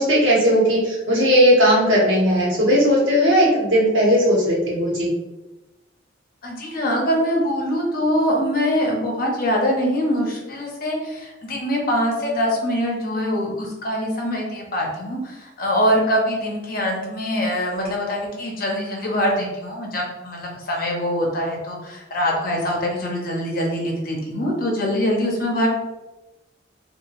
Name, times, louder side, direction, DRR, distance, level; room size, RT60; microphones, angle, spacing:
voice 1, 0.0-5.1, equal, 75° right, -5 dB, 1.1 m, -17 dB
voice 2, 6.4-25.7, equal, 50° left, -1 dB, 0.7 m, -23 dB
2.8 x 2.4 x 2.9 m, 1.1 s
head